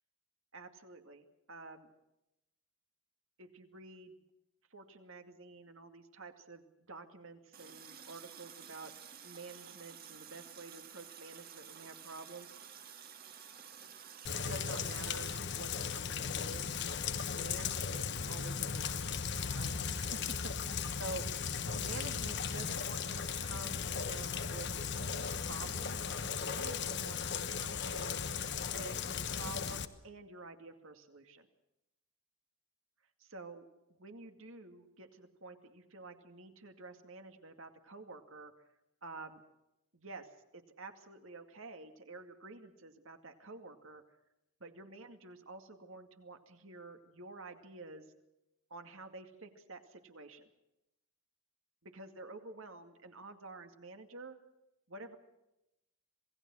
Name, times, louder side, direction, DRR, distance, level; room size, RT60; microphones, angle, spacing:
voice 1, 0.5-1.9 3.4-4.2 4.7-8.9 9.2-12.7 14.3-16.7 17.3-19.0 19.5-20.4 20.6-20.7 21.0-21.2 21.7-24.7 25.2-26.0 26.4-28.3 28.7-31.5 33.2-38.5 39.0-39.4 39.9-44.0 44.6-48.1 48.7-50.5 51.8-54.4 54.9-55.2, right 3 dB, 65° right, 6 dB, 2.3 m, -49 dB
Water tap faucet, 7.5-15.4, right 8 dB, 40° right, 2.0 m, -52 dB
Rain, 14.3-29.9, left 6 dB, 50° left, 1.1 m, -37 dB
27.0 x 18.5 x 6.4 m, 0.89 s
head